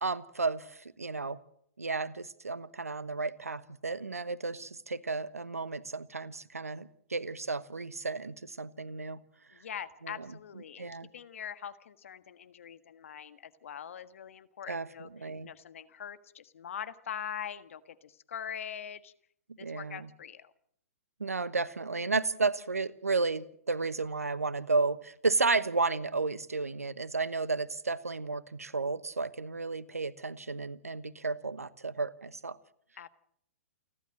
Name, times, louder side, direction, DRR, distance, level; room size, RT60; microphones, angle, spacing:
voice 1, 0.0-1.4 1.8-9.2 10.0-10.3 10.8-11.1 14.7-15.5 19.6-20.1 21.2-32.6, right 3 dB, 85° right, 18 dB, 1.1 m, -33 dB
voice 2, 9.5-19.1 19.6-20.5 33.0-33.1, left 8 dB, 65° left, 13 dB, 1.5 m, -43 dB
29.0 x 12.0 x 7.7 m, 0.68 s
figure-of-eight pair, 120°, 8 cm